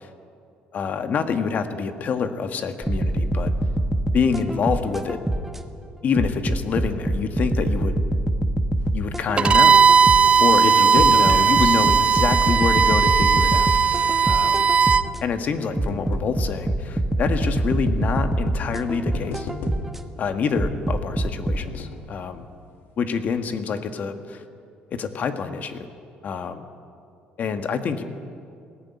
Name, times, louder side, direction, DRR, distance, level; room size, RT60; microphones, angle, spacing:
voice 1, 0.7-3.5 4.1-5.2 6.0-8.0 8.9-9.8 10.4-13.7 14.3-14.6 15.2-19.5 20.2-22.5 23.0-24.4 24.9-25.9 26.2-26.6 27.4-28.0, left 5 dB, 50° left, 7 dB, 1.6 m, -26 dB
sound 1, 2.8-5.6 6.2-10.4 11.0-15.2 15.8-20.0 20.6-21.6, right 1 dB, 5° right, 1.2 m, -25 dB
sound 2, 8.7-14.2 15.1-16.6 17.4-17.5 18.5-18.6 18.9-20.1 21.1-22.2 22.6-22.7 23.0-23.1, left 5 dB, 75° left, 1.9 m, -37 dB
Bowed string instrument, 9.4-15.1, right 6 dB, 30° right, 0.5 m, -17 dB
19.0 x 14.5 x 9.7 m, 2.4 s
cardioid pair, 100°, 4 cm